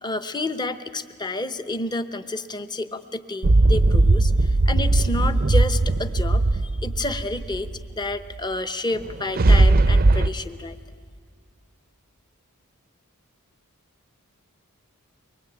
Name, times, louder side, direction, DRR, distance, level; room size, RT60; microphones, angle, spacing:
voice 1, 0.0-7.7 8.0-10.8, left 2 dB, 20° left, 10 dB, 0.9 m, -30 dB
sound 1, 3.4-8.0 8.9-10.3, right 2 dB, 45° right, 0.5 m, -18 dB
24.0 x 23.0 x 8.8 m, 2.1 s
head